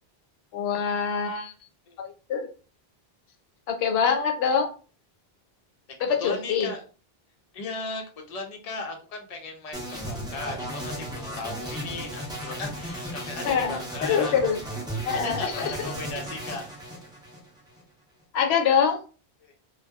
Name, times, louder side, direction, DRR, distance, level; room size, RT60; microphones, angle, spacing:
voice 1, 0.5-1.5 2.0-2.5 3.7-4.7 6.0-6.7 13.4-14.6 15.0-15.7 18.3-19.0, left 6 dB, 80° left, 5 dB, 0.8 m, -24 dB
voice 2, 6.2-6.8 7.5-14.3 15.2-16.7 19.4-19.5, left 3 dB, 45° left, 3 dB, 0.6 m, -36 dB
sound 1, 9.7-17.8, right 1 dB, 5° right, 0.6 m, -35 dB
2.6 x 2.2 x 2.3 m, 0.37 s
omnidirectional pair, 1.1 m